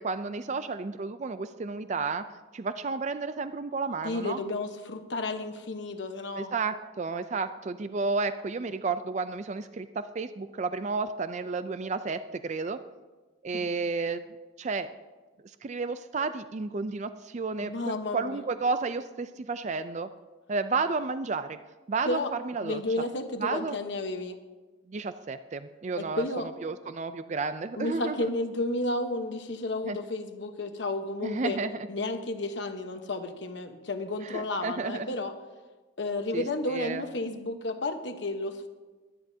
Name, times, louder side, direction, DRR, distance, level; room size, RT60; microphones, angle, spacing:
voice 1, 0.0-2.2 2.5-4.4 6.4-12.8 13.4-14.2 14.6-14.9 15.6-20.1 20.5-21.6 21.9-22.8 23.4-23.8 24.9-26.3 26.6-28.3 29.8-30.0 31.2-31.9 34.2-35.1 36.3-36.4 36.7-37.1, right 4 dB, 35° right, 11 dB, 0.4 m, -32 dB
voice 2, 4.0-6.5 13.5-13.6 17.6-18.4 22.0-22.3 22.6-24.4 26.0-26.5 27.8-31.6 31.9-35.3 36.0-38.7, left 2 dB, 60° left, 6 dB, 1.1 m, -32 dB
22.5 x 10.5 x 2.8 m, 1.3 s
head